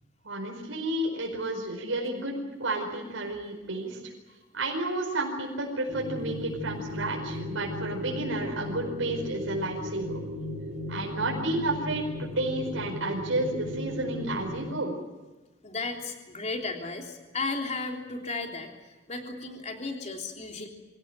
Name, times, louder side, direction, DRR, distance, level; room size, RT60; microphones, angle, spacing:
voice 1, 0.2-4.1 4.5-10.2 10.9-14.9, right 2 dB, 85° right, 0 dB, 4.9 m, -31 dB
sound 1, 5.9-14.7, left 1 dB, 35° right, 5.6 m, -36 dB
voice 2, 15.6-20.7, left 3 dB, 35° left, 2 dB, 3.5 m, -34 dB
25.5 x 17.5 x 9.1 m, 1.2 s
head